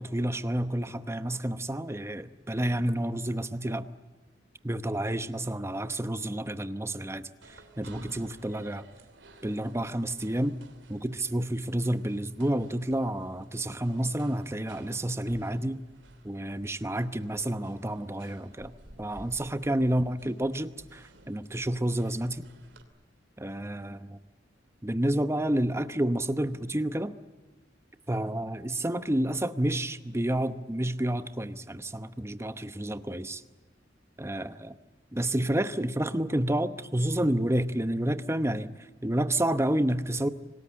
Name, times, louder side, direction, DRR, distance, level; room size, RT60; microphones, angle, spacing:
voice 1, 0.0-3.9 4.6-8.8 9.4-10.6 10.9-15.8 16.2-22.4 23.4-24.0 24.8-27.1 28.1-33.4 34.2-34.8 35.1-40.3, right 1 dB, 15° right, 12 dB, 0.9 m, -30 dB
sound 1, 7.4-22.8, right 2 dB, 85° right, 2.8 m, -54 dB
26.0 x 19.5 x 8.8 m, 1.3 s
head